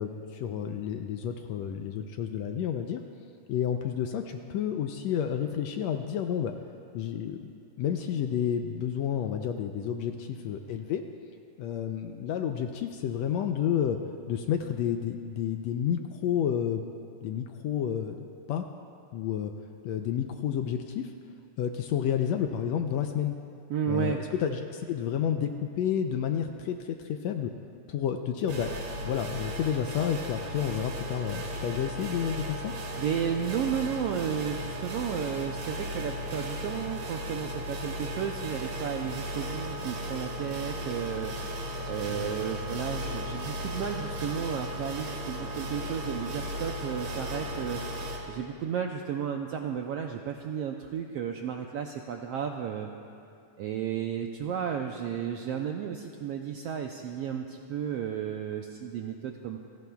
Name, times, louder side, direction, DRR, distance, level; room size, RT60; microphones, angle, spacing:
voice 1, 0.0-3.0 3.5-6.5 6.9-11.0 11.6-14.0 14.3-16.8 17.2-18.6 19.1-19.5 19.8-21.1 21.6-23.4 23.9-27.0 27.2-27.5 27.9-28.7 29.0-32.7 42.1-42.3, left 9 dB, 75° left, 5 dB, 1.7 m, -30 dB
voice 2, 23.7-24.2 33.0-41.3 41.9-47.8 48.3-52.9 53.6-59.6, right 8 dB, 80° right, 2 dB, 1.4 m, -33 dB
sound 1, 28.5-48.2, equal, 60° right, 2.9 m, -36 dB
29.0 x 17.0 x 2.3 m, 2.5 s
omnidirectional pair, 3.5 m